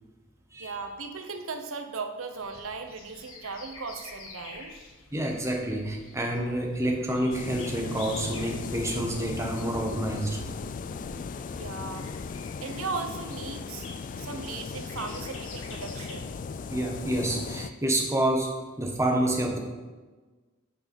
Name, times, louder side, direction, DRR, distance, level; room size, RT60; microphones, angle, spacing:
voice 1, 0.6-4.7 11.5-12.1 12.6-13.9 14.2-16.3, right 4 dB, 90° right, 6 dB, 0.9 m, -37 dB
sound 1, 2.3-17.5, left 2 dB, 75° left, 1.6 m, -48 dB
voice 2, 5.1-10.4 16.7-18.5 18.8-19.6, right 1 dB, 15° right, 0 dB, 1.2 m, -28 dB
sound 2, 7.3-17.7, left 5 dB, 40° left, 0.3 m, -37 dB
9.1 x 4.7 x 5.3 m, 1.3 s
head